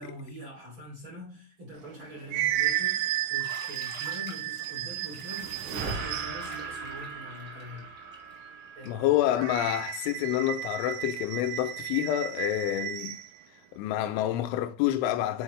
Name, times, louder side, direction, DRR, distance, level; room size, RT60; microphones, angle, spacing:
voice 1, 0.0-7.9 8.7-9.0, equal, 35° right, 2.4 m, -44 dB
sound 1, 1.8-6.6 9.3-13.3, right 13 dB, 85° right, 3.3 m, -33 dB
Bathtub (filling or washing), 3.4-9.1, equal, 15° right, 1.7 m, -48 dB
sound 2, 4.5-9.9, right 4 dB, 60° right, 2.5 m, -40 dB
voice 2, 8.9-13.2 13.7-15.4, left 13 dB, 85° left, 3.1 m, -28 dB
7.1 x 5.0 x 3.1 m
omnidirectional pair, 5.5 m